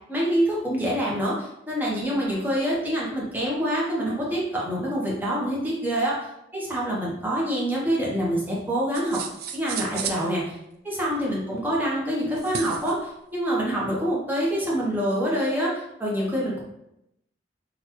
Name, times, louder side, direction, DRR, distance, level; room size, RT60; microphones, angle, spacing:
voice 1, 0.1-6.3 6.5-9.2 9.5-10.5 10.8-16.6, equal, 10° right, -5 dB, 0.8 m, -26 dB
sound 1, 8.9-10.3 12.4-13.0, right 7 dB, 55° right, 0.3 m, -33 dB
3.8 x 2.3 x 2.9 m, 0.83 s
head